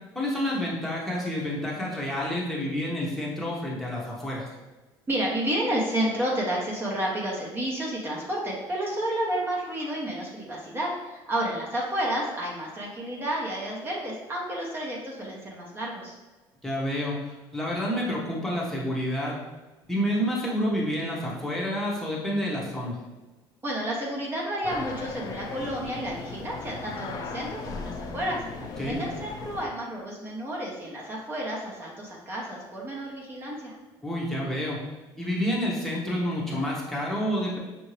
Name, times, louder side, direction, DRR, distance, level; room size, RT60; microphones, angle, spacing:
voice 1, 0.1-4.4 16.6-17.1 17.5-19.3 19.9-22.9 28.8-29.0 34.0-34.8 35.2-37.6, equal, 5° left, -5 dB, 0.9 m, -29 dB
voice 2, 5.1-16.2 23.6-28.4 28.8-33.7, right 1 dB, 25° right, -3 dB, 0.8 m, -31 dB
sound 1, 24.6-29.7, left 4 dB, 45° left, 0.4 m, -37 dB
5.6 x 2.6 x 3.1 m, 1.2 s
cardioid pair, 135°, 9 cm